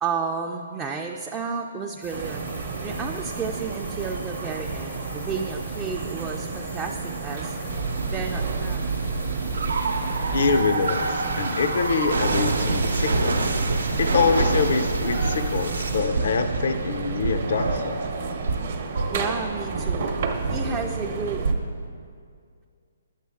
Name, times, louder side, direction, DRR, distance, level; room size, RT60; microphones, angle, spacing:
voice 1, 0.0-2.4 2.8-8.9 19.1-20.1 20.5-21.5, right 5 dB, 15° right, 1 dB, 0.4 m, -32 dB
sound 1, 2.0-16.0, left 3 dB, 85° left, 1.0 m, -44 dB
sound 2, 2.1-21.5, right 4 dB, 50° right, 0.7 m, -33 dB
sound 3, 7.7-21.9, right 3 dB, 85° right, 0.7 m, -27 dB
voice 2, 10.3-13.5 14.0-18.0, left 5 dB, 65° left, 8 dB, 0.5 m, -25 dB
9.2 x 7.3 x 3.5 m, 2.2 s
hypercardioid pair, 145°, 0 cm